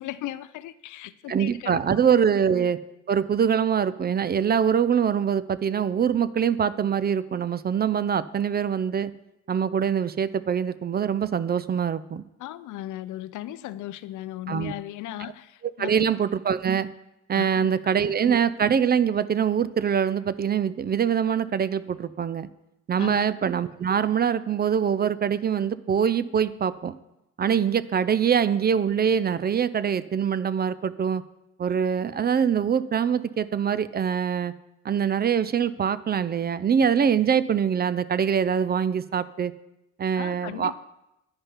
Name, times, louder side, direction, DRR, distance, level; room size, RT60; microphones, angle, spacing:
voice 1, 0.0-2.0 12.4-16.1 17.3-18.1 23.0-23.3 40.2-40.8, left 14 dB, 80° left, 0.5 m, -37 dB
voice 2, 1.3-2.8 3.1-9.1 9.5-12.2 14.5-14.7 15.8-16.9 17.3-22.5 22.9-26.9 27.4-31.2 31.6-34.5 34.8-39.5 40.0-40.8, right 7 dB, 35° right, 0.4 m, -24 dB
9.7 x 5.5 x 5.6 m
cardioid pair, 90°, 30 cm